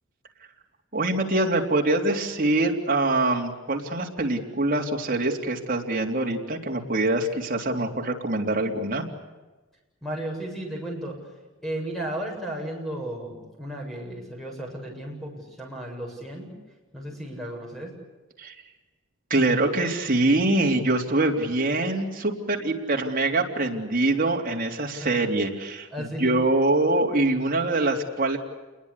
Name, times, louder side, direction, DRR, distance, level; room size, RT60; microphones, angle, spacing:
voice 1, 0.9-9.1 18.4-18.6 19.3-28.4, right 2 dB, 40° right, 0 dB, 3.6 m, -24 dB
voice 2, 10.0-11.2 11.6-16.5 16.9-17.9 25.0-25.1 25.9-26.4, right 1 dB, ahead, 0 dB, 7.7 m, -34 dB
28.5 x 22.0 x 8.4 m, 1.2 s
head